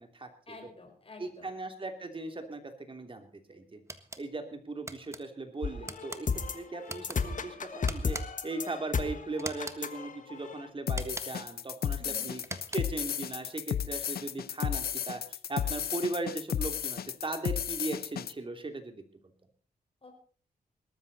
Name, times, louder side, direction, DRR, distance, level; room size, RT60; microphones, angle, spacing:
voice 1, 0.5-1.5 12.0-12.4 20.0-20.2, left 3 dB, 35° left, 3 dB, 4.9 m, -49 dB
voice 2, 1.2-3.8 4.2-6.3 6.5-8.2 8.4-12.4 12.7-19.0, right 2 dB, 35° right, 6 dB, 3.0 m, -38 dB
sound 1, 3.9-4.2 4.9-5.2 5.8-6.2 6.8-7.2 7.9-8.5 9.4-9.8 10.9-11.5 12.4-13.0, right 2 dB, 20° right, 1.5 m, -41 dB
sound 2, 5.6-10.7, left 5 dB, 55° left, 1.5 m, -34 dB
sound 3, 10.9-18.3, left 9 dB, 80° left, 0.7 m, -33 dB
19.5 x 13.5 x 4.2 m, 0.43 s
cardioid pair, 85°, 16 cm